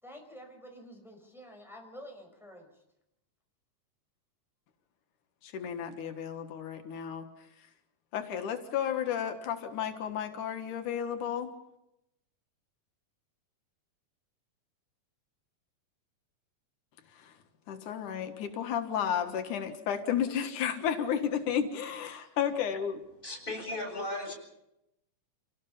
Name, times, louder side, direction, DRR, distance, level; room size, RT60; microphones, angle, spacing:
voice 1, 0.0-2.8, equal, ahead, 1 dB, 5.6 m, -49 dB
voice 2, 5.4-7.3 8.1-11.5 17.1-17.3 17.7-23.0, left 8 dB, 90° left, 6 dB, 3.1 m, -32 dB
voice 3, 23.2-24.3, left 2 dB, 15° left, 1 dB, 7.3 m, -36 dB
29.0 x 18.5 x 5.6 m, 0.84 s
omnidirectional pair, 3.4 m